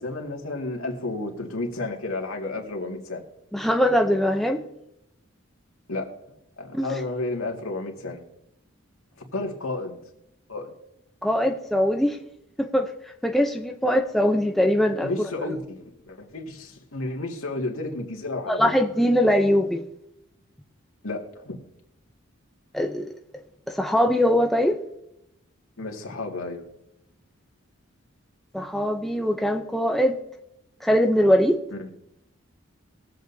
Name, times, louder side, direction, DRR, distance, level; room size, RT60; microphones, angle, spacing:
voice 1, 0.0-3.2 5.9-6.1 6.6-8.2 9.3-10.0 10.5-10.7 15.0-18.8 21.0-21.6 25.8-26.7 31.7-31.9, left 2 dB, 80° left, 1 dB, 2.1 m, -32 dB
voice 2, 3.5-4.6 6.7-6.9 11.2-12.2 12.6-12.9 13.2-15.1 18.6-19.9 22.7-23.1 23.7-24.8 28.5-30.2 30.8-31.6, equal, ahead, 3 dB, 0.6 m, -21 dB
21.5 x 7.7 x 2.7 m, 0.81 s
head